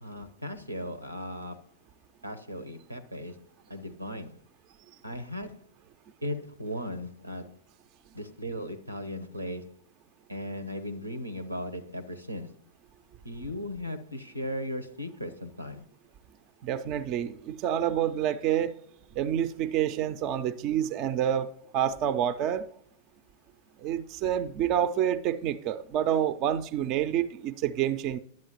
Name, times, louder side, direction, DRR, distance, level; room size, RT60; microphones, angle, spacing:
voice 1, 0.0-1.6 2.2-3.4 3.7-4.4 5.0-5.7 6.2-7.6 8.1-9.8 10.3-12.5 13.2-15.8, equal, 85° right, 0.7 m, -37 dB
voice 2, 16.6-18.7 19.2-21.5 21.7-22.7 23.8-28.2, right 10 dB, 40° right, 0.4 m, -28 dB
10.5 x 7.5 x 2.9 m
figure-of-eight pair, 90°, 0 cm